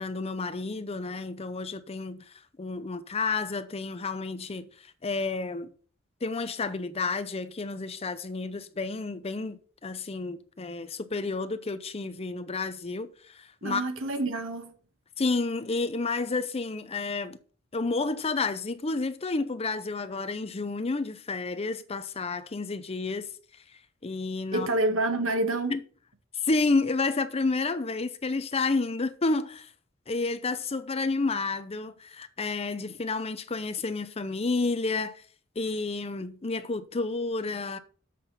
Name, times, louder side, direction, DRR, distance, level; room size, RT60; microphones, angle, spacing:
voice 1, 0.0-5.7 6.2-13.8 15.2-17.4 17.7-23.6 24.0-24.7 25.7-25.8 26.3-29.7 30.1-35.2 35.6-37.8, left 3 dB, 30° left, 0.6 m, -30 dB
voice 2, 13.6-14.7 24.5-25.8, right 2 dB, 70° right, 1.4 m, -28 dB
7.5 x 5.8 x 5.4 m
head